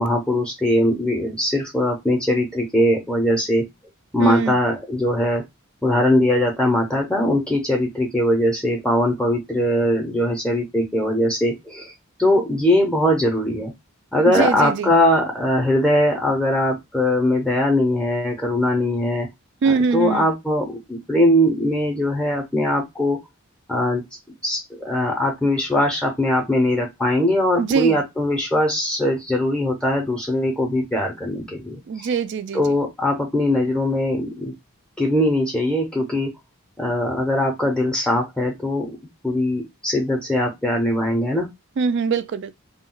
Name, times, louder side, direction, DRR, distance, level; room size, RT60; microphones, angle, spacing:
voice 1, 0.0-3.6 4.1-5.4 5.8-11.9 12.2-13.7 14.1-19.3 19.7-23.2 23.7-24.0 24.4-32.1 32.5-34.5 35.0-36.3 36.8-38.9 39.2-41.5, left 1 dB, 5° left, 0.6 m, -21 dB
voice 2, 4.2-4.6 14.3-14.9 19.6-20.3 27.6-28.0 31.9-32.7 41.8-42.5, right 5 dB, 55° right, 0.3 m, -22 dB
2.3 x 2.1 x 3.7 m
head